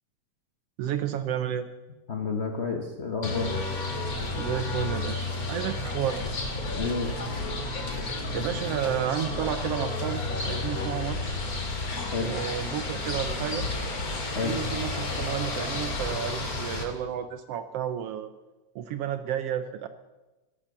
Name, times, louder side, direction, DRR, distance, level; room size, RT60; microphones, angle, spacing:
voice 1, 0.8-1.7 4.4-6.3 8.3-11.4 12.2-13.7 14.4-18.3 18.7-19.9, right 9 dB, 70° right, 11 dB, 1.5 m, -31 dB
voice 2, 2.1-3.6 6.7-7.1 12.1-12.3 14.3-14.6, left 4 dB, 60° left, 3 dB, 0.7 m, -30 dB
sound 1, 3.2-16.8, left 2 dB, 35° left, 2.3 m, -31 dB
16.0 x 12.5 x 7.1 m, 1.1 s
omnidirectional pair, 3.3 m